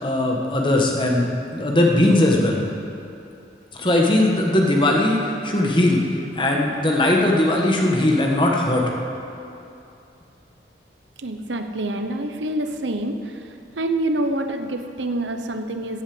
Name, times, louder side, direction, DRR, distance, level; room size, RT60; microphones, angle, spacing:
voice 1, 0.0-2.6 3.7-6.0 6.4-8.8, left 1 dB, 25° left, -1 dB, 1.6 m, -19 dB
voice 2, 11.2-16.0, right 1 dB, 90° right, 6 dB, 1.0 m, -27 dB
14.5 x 8.6 x 7.9 m, 2.8 s
head